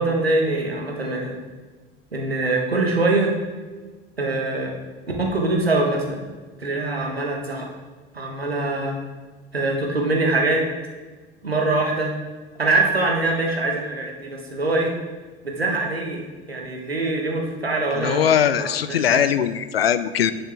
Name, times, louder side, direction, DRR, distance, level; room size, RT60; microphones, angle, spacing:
voice 1, 0.0-1.4 2.1-3.3 4.2-4.7 5.2-6.3 6.6-7.7 8.1-8.9 9.5-10.6 11.4-12.1 12.6-14.9 15.4-19.2, right 2 dB, 85° right, 0 dB, 1.2 m, -23 dB
voice 2, 18.0-20.3, left 9 dB, 80° left, 13 dB, 0.5 m, -20 dB
10.0 x 6.1 x 3.4 m, 1.3 s
figure-of-eight pair, 65°, 30 cm